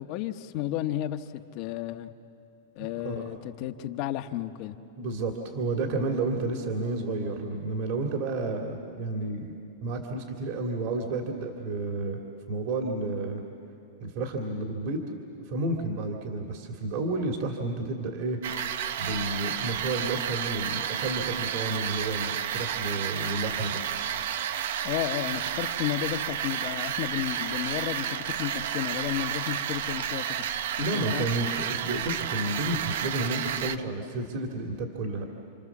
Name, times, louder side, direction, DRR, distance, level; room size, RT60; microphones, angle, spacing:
voice 1, 0.0-2.1 2.7-4.7 24.8-30.4 30.8-31.3, left 12 dB, 45° left, 8 dB, 1.2 m, -32 dB
voice 2, 2.8-3.3 5.0-9.5 9.8-12.2 12.5-13.4 14.0-15.0 15.5-18.4 19.0-24.0 30.8-35.3, right 2 dB, 50° right, 2 dB, 2.6 m, -31 dB
sound 1, 18.4-33.8, right 9 dB, 70° right, 1.0 m, -31 dB
29.5 x 26.0 x 7.3 m, 2.6 s
supercardioid pair, 150°, 0 cm